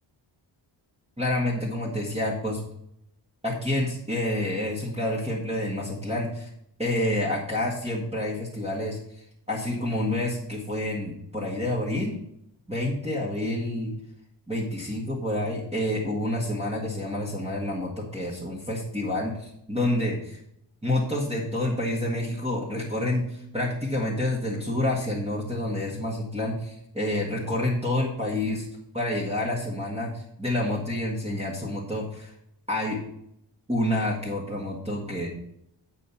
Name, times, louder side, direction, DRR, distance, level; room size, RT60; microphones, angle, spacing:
voice 1, 1.2-2.6 3.4-6.5 6.8-9.2 9.5-12.2 12.7-13.9 14.5-20.4 20.8-28.7 28.9-32.3 32.7-33.0 33.7-35.3, left 1 dB, 15° right, -4 dB, 1.8 m, -28 dB
8.8 x 4.3 x 7.1 m, 0.75 s
wide cardioid pair, 100°, 46 cm